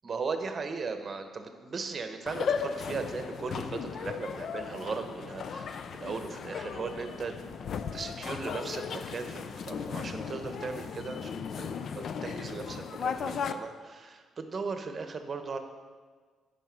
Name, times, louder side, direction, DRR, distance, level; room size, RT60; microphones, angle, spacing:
voice 1, 0.0-7.4 7.9-15.6, right 4 dB, 40° right, 7 dB, 0.9 m, -37 dB
sound 1, 2.3-13.5, left 6 dB, 60° left, 0.5 m, -36 dB
9.0 x 5.2 x 6.0 m, 1.5 s
cardioid pair, 90°, 0 cm